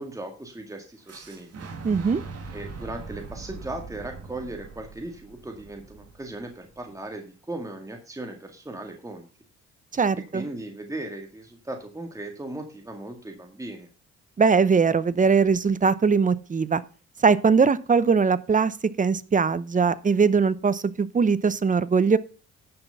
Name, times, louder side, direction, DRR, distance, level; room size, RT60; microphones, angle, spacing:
voice 1, 0.0-1.7 2.5-9.3 10.3-13.9, right 2 dB, 10° right, 4 dB, 1.9 m, -37 dB
Boom, 1.1-7.0, right 4 dB, 55° right, 2.4 m, -41 dB
voice 2, 1.8-2.2 9.9-10.5 14.4-16.8 17.2-22.2, right 5 dB, 25° right, 17 dB, 0.8 m, -21 dB
10.5 x 6.2 x 5.5 m, 0.35 s
cardioid pair, 90°, 30 cm